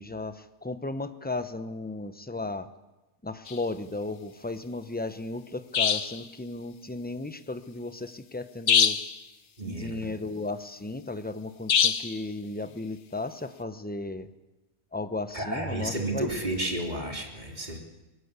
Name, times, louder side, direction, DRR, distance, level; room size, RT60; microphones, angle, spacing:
voice 1, 0.0-2.7 3.2-9.0 9.6-14.3 14.9-16.4, left 2 dB, 10° left, 10 dB, 0.7 m, -35 dB
sound 1, 3.5-3.6 5.7-6.2 8.7-9.2 11.7-12.2, left 7 dB, 65° left, 1.3 m, -23 dB
voice 2, 9.6-10.1 15.3-17.8, right 1 dB, 30° right, 1 dB, 3.4 m, -32 dB
21.0 x 19.5 x 8.2 m, 1.1 s
omnidirectional pair, 1.5 m